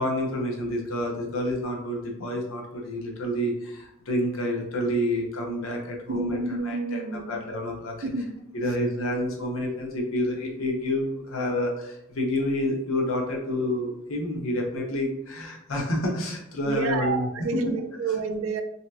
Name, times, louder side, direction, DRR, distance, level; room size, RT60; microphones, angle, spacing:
voice 1, 0.0-6.4 6.6-7.9 8.5-17.7, left 1 dB, 75° left, 1 dB, 0.7 m, -28 dB
voice 2, 6.1-7.4 8.0-8.4 16.7-18.6, right 4 dB, 75° right, 8 dB, 0.4 m, -29 dB
3.2 x 2.8 x 2.2 m, 0.79 s
head